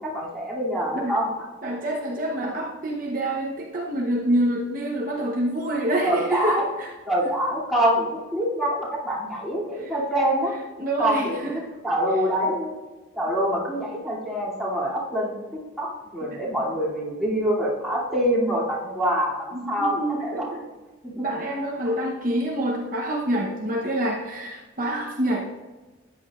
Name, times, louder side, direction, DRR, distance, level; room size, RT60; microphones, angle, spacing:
voice 1, 0.0-1.5 6.0-6.6 7.1-10.5 11.0-11.3 11.8-12.7 13.1-20.5 21.8-21.9, equal, ahead, -9 dB, 2.7 m, -25 dB
voice 2, 1.6-6.9 7.2-7.3 9.8-9.9 10.8-11.6 16.3-16.5 19.5-20.6 21.1-25.4, right 1 dB, 40° right, -2 dB, 0.9 m, -27 dB
13.5 x 9.6 x 2.5 m, 1.2 s
head